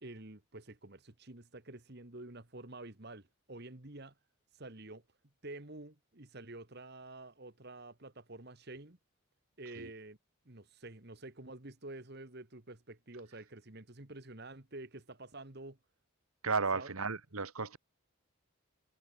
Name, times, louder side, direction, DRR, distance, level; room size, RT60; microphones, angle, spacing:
voice 1, 0.0-4.1 4.5-5.0 5.4-9.0 9.6-10.2 10.5-15.8 16.7-16.9, right 2 dB, 50° right, 1.8 m, -49 dB
voice 2, 16.4-17.8, right 4 dB, 85° right, 1.9 m, -34 dB
head